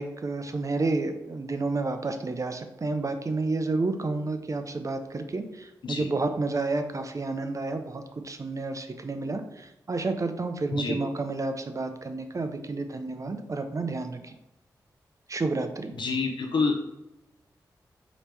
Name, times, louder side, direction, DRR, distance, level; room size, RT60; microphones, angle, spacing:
voice 1, 0.0-14.4 15.3-15.9, right 3 dB, 40° right, 7 dB, 0.6 m, -30 dB
voice 2, 15.9-16.7, left 4 dB, 70° left, 1 dB, 0.7 m, -27 dB
5.0 x 3.0 x 3.3 m, 0.92 s
cardioid pair, 45°, 8 cm